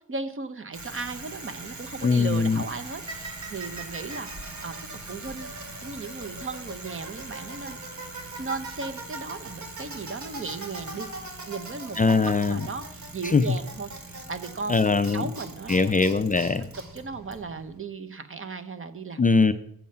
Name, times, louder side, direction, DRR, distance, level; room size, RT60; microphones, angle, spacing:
voice 1, 0.1-4.7 5.1-5.5 5.8-7.8 8.4-11.1 11.5-13.9 14.3-15.9 16.9-19.2, right 4 dB, 35° right, 10 dB, 0.9 m, -36 dB
Bicycle, 0.7-17.8, right 2 dB, 55° right, 2.3 m, -40 dB
voice 2, 2.0-2.6 12.0-12.6 13.2-13.5 14.7-15.2 15.7-16.7 19.2-19.5, left 4 dB, 25° left, 10 dB, 0.4 m, -21 dB
8.5 x 7.1 x 5.5 m, 0.74 s
cardioid pair, 90°, 35 cm